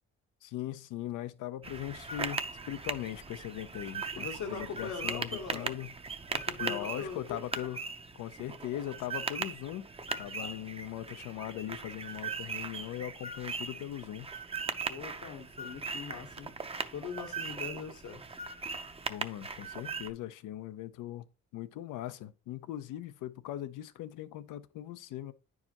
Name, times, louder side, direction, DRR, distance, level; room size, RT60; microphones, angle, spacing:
voice 1, 0.4-5.9 6.6-7.8 8.1-9.9 10.2-14.3 19.1-21.2 21.5-25.3, left 12 dB, 85° left, 0.6 m, -40 dB
sound 1, 1.6-20.1, right 4 dB, 20° right, 0.6 m, -39 dB
voice 2, 4.1-5.8 6.3-7.4 10.4-10.6 12.4-12.5 14.6-16.5 16.9-18.2, left 6 dB, 70° left, 1.1 m, -41 dB
9.6 x 4.8 x 2.9 m
cardioid pair, 90°, 30 cm